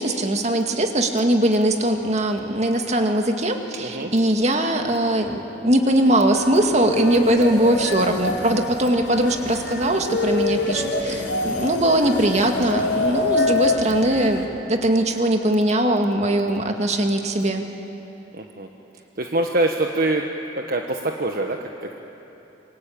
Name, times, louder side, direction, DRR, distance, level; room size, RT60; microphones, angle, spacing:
voice 1, 0.0-17.7, right 1 dB, 40° right, 4 dB, 2.1 m, -21 dB
voice 2, 3.8-4.1 18.3-18.7 18.9-20.3 20.6-22.0, right 2 dB, 55° right, 3 dB, 1.3 m, -25 dB
sound 1, 6.0-14.5, left 2 dB, 75° left, 3.4 m, -26 dB
27.5 x 24.5 x 8.7 m, 3.0 s
head